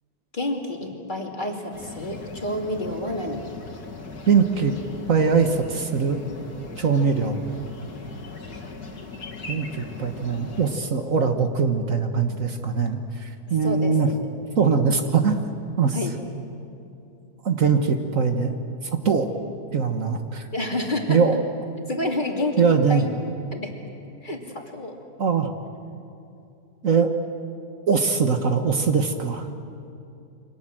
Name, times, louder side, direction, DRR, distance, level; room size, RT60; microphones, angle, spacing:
voice 1, 0.3-3.4 8.5-8.7 13.6-14.2 15.9-16.2 20.5-21.2 21.8-23.1 23.5-23.7 24.2-25.0, left 1 dB, 30° left, 1 dB, 2.8 m, -29 dB
sound 1, 1.7-10.8, left 3 dB, 75° left, 2.8 m, -39 dB
voice 2, 4.3-4.7 5.1-6.2 6.8-7.4 9.5-14.1 14.6-15.4 15.8-16.0 17.4-18.6 19.0-19.3 19.7-20.4 21.1-21.4 22.6-23.1 25.2-25.5 26.8-27.1 27.9-29.5, right 5 dB, 55° right, 6 dB, 1.7 m, -21 dB
29.0 x 24.5 x 7.7 m, 2.6 s
omnidirectional pair, 1.7 m